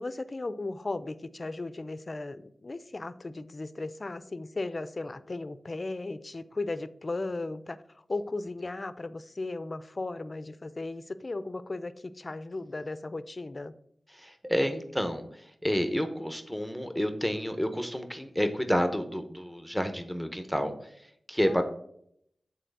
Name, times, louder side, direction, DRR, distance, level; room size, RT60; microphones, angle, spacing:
voice 1, 0.0-13.7 21.4-21.6, left 2 dB, 40° left, 14 dB, 0.5 m, -36 dB
voice 2, 14.1-20.7 21.3-21.6, equal, ahead, 7 dB, 0.8 m, -29 dB
7.7 x 4.0 x 6.5 m, 0.69 s
wide cardioid pair, 85°, 0 cm